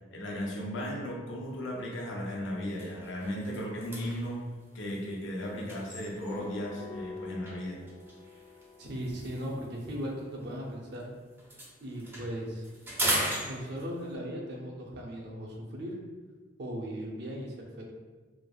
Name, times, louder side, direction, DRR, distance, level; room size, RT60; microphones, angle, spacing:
voice 1, 0.1-4.4 4.7-7.8, equal, 85° left, -2 dB, 0.6 m, -36 dB
sound 1, 1.5-1.7 2.2-2.3 2.7-6.6 7.5-11.0 11.3-14.2, right 1 dB, 10° right, 0.5 m, -38 dB
sound 2, 6.2-11.0, left 4 dB, 30° left, 0.7 m, -47 dB
voice 2, 8.8-11.1 11.8-12.6 13.4-16.0 16.6-17.8, equal, 60° right, -1 dB, 0.5 m, -38 dB
3.1 x 2.0 x 2.2 m, 1.4 s
head